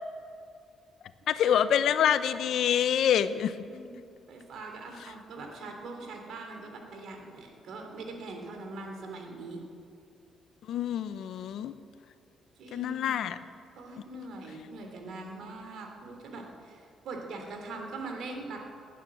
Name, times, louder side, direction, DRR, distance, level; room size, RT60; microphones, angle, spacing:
voice 1, 1.3-3.5 10.7-11.7 12.7-13.4, left 9 dB, 75° left, 12 dB, 0.7 m, -26 dB
voice 2, 4.3-9.6 12.6-13.3 13.8-18.6, right 3 dB, 75° right, 3 dB, 3.2 m, -42 dB
19.0 x 9.5 x 7.6 m, 2.4 s
cardioid pair, 90°, 0 cm